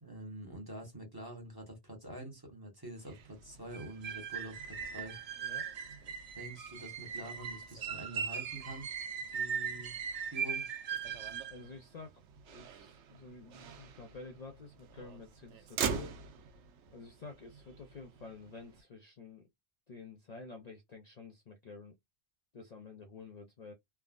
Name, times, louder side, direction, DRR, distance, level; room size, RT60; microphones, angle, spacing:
voice 1, 0.0-5.2 6.3-8.9 9.3-9.9 10.2-10.7, right 1 dB, 20° right, 1.1 m, -46 dB
Motor vehicle (road), 3.0-18.8, right 6 dB, 80° right, 0.9 m, -46 dB
sound 1, 3.7-11.6, right 7 dB, 50° right, 0.5 m, -39 dB
voice 2, 11.5-12.2 12.5-16.2 16.9-19.5 19.9-21.9 22.5-23.7, left 4 dB, 45° left, 0.6 m, -50 dB
3.4 x 2.1 x 2.4 m
omnidirectional pair, 1.2 m